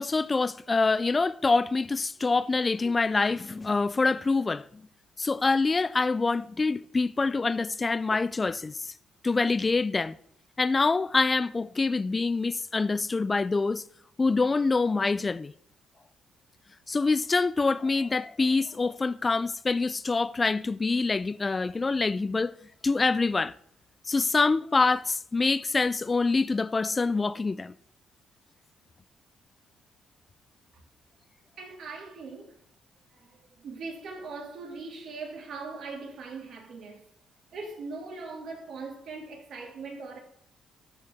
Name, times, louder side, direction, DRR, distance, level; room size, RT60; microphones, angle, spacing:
voice 1, 0.0-4.6 5.2-8.8 9.2-10.2 10.6-13.8 14.2-15.5 16.9-22.5 22.8-23.5 24.1-27.7, left 3 dB, 25° left, 0.3 m, -25 dB
voice 2, 31.6-32.5 33.1-37.0 37.5-40.2, right 4 dB, 70° right, 2.3 m, -40 dB
13.0 x 4.7 x 3.5 m
cardioid pair, 90°, 0 cm